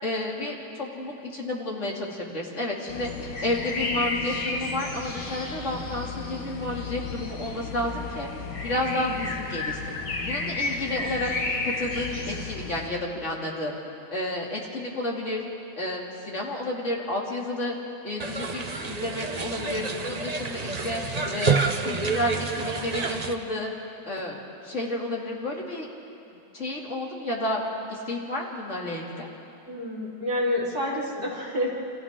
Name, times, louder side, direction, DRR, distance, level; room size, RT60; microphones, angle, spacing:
voice 1, 0.0-3.1 3.4-8.3 8.6-10.0 10.2-11.3 11.6-13.7 14.1-15.4 15.8-17.8 18.0-21.0 21.3-23.7 24.1-25.9 26.5-27.6 27.9-29.3, left 1 dB, 40° left, -3 dB, 3.1 m, -31 dB
sound 1, 2.9-12.9, left 3 dB, 70° left, 2.3 m, -32 dB
sound 2, 18.2-23.3, right 4 dB, 30° right, 0.7 m, -28 dB
voice 2, 29.7-31.7, left 1 dB, 50° right, -8 dB, 5.5 m, -28 dB
30.0 x 27.0 x 3.8 m, 2.8 s
omnidirectional pair, 2.0 m